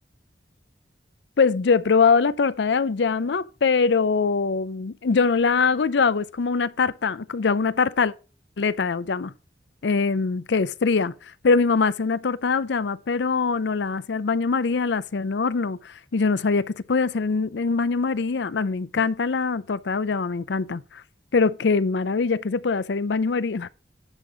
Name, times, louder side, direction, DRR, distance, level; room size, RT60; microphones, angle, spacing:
voice 1, 1.4-8.1 8.6-9.3 9.8-21.0 21.3-23.7, left 4 dB, 75° left, 0.5 m, -23 dB
9.8 x 6.7 x 3.9 m
head